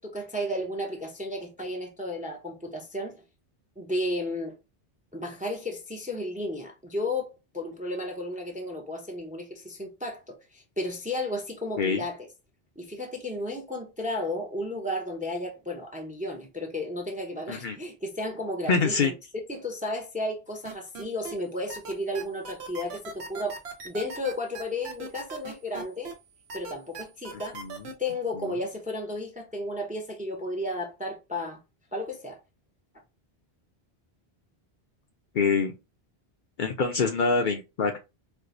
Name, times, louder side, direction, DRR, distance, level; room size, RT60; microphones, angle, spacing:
voice 1, 0.0-3.2 3.8-4.6 5.1-12.2 12.8-23.6 23.8-26.1 26.5-27.6 28.0-31.6 31.9-32.4, left 1 dB, 10° right, 0.5 m, -33 dB
voice 2, 18.7-19.1 27.5-27.9 35.3-35.7 36.6-38.1, left 4 dB, 60° left, 0.6 m, -25 dB
sound 1, 20.6-21.3 21.7-26.1 26.5-27.9, right 3 dB, 85° right, 1.1 m, -38 dB
4.5 x 2.0 x 2.5 m
omnidirectional pair, 1.1 m